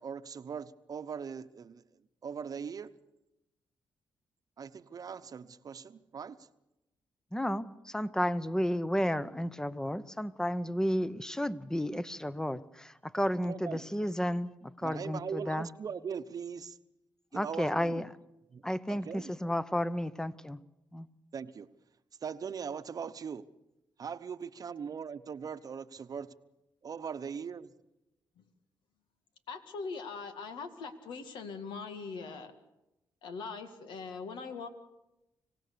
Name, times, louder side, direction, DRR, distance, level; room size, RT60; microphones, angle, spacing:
voice 1, 0.0-1.8 2.2-2.9 4.6-6.5 13.4-13.8 14.8-16.8 17.3-18.0 18.5-18.6 18.9-19.3 21.3-21.7 22.2-23.5 24.0-26.3 26.8-27.7, right 6 dB, 50° right, 11 dB, 1.0 m, -40 dB
voice 2, 7.3-15.7 17.3-18.1 18.6-20.6 20.9-21.1, equal, 5° left, 15 dB, 0.9 m, -32 dB
voice 3, 29.5-32.5 33.2-34.7, left 4 dB, 85° left, 8 dB, 2.1 m, -41 dB
25.5 x 17.5 x 6.9 m, 0.92 s
cardioid pair, 75°, 8 cm